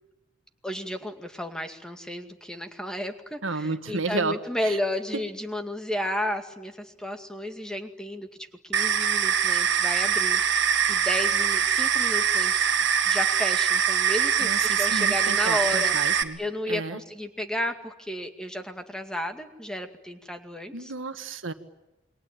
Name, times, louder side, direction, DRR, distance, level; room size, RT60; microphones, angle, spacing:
voice 1, 0.6-8.3 8.6-16.0 16.4-20.9, left 1 dB, 5° left, 6 dB, 2.2 m, -33 dB
voice 2, 3.4-4.8 14.4-16.4 16.7-17.0 20.7-21.5, right 3 dB, 90° right, 9 dB, 1.7 m, -32 dB
sound 1, 8.7-16.2, right 7 dB, 65° right, 2.0 m, -23 dB
28.5 x 22.5 x 9.0 m, 1.0 s
head